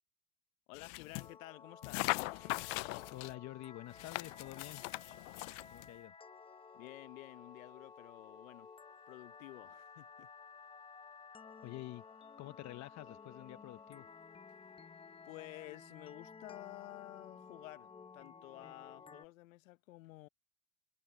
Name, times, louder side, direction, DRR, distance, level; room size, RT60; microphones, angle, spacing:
voice 1, 0.7-2.2 6.7-8.7 9.1-10.3 12.4-12.5 15.2-20.3, left 19 dB, 85° left, 0.9 m, -52 dB
sound 1, 0.7-1.3 1.8-3.3 3.9-5.9, left 27 dB, 65° left, 0.6 m, -40 dB
sound 2, 1.2-19.3, left 5 dB, 15° left, 1.0 m, -55 dB
sound 3, 2.3-16.0, right 17 dB, 50° right, 7.2 m, -80 dB
voice 2, 3.1-4.8 5.7-6.1 11.6-12.0 12.4-14.1, left 17 dB, 45° left, 1.1 m, -48 dB
supercardioid pair, 115°, 40 cm